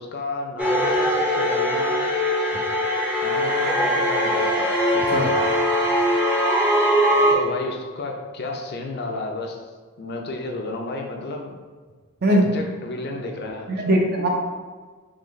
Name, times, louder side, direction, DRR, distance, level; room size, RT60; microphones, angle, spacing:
voice 1, 0.0-2.1 3.2-4.7 7.3-9.7 10.0-11.5 12.3-14.0, left 2 dB, 50° left, 2 dB, 0.5 m, -32 dB
sound 1, 0.6-7.3, equal, 5° right, 0.6 m, -21 dB
voice 2, 13.7-14.3, right 1 dB, 45° right, 1 dB, 0.6 m, -20 dB
3.8 x 3.2 x 3.2 m, 1.4 s
head